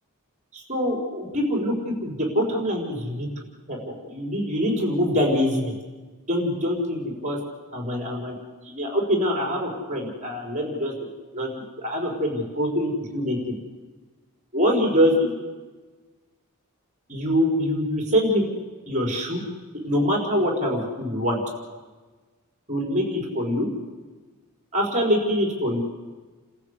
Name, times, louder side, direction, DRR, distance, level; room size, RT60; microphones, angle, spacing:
voice 1, 0.5-1.7 2.0-3.3 3.7-5.7 6.3-7.4 7.7-8.4 8.7-10.9 11.3-11.5 11.8-13.4 14.5-15.3 17.1-18.5 18.9-19.4 19.8-21.4 22.7-23.7 24.7-25.8, equal, 35° right, 1 dB, 5.1 m, -24 dB
30.0 x 14.5 x 8.3 m, 1.3 s
head